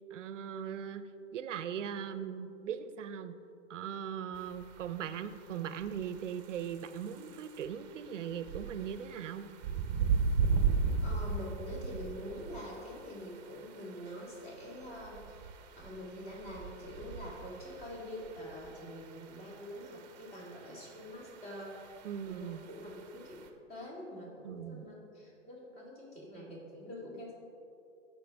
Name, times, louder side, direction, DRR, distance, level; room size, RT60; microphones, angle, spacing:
voice 1, 0.1-1.0 1.3-3.4 3.7-9.5 22.0-22.6 24.4-24.9, right 8 dB, 75° right, 12 dB, 0.7 m, -39 dB
sound 1, 4.3-23.5, right 5 dB, 35° right, 0.8 m, -38 dB
voice 2, 11.0-15.2 15.8-21.7 22.2-27.4, equal, 25° left, -4 dB, 2.3 m, -45 dB
15.5 x 5.9 x 3.5 m, 2.7 s
hypercardioid pair, 155°, 37 cm